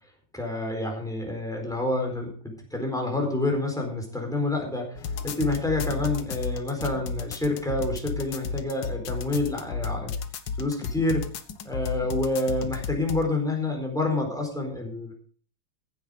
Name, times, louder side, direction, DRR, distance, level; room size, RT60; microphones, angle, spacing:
voice 1, 0.3-10.1 10.6-11.3 11.6-15.1, left 2 dB, ahead, 1 dB, 3.9 m, -28 dB
sound 1, 5.0-13.2, left 5 dB, 65° left, 1.1 m, -33 dB
15.5 x 9.1 x 5.1 m, 0.42 s
omnidirectional pair, 3.4 m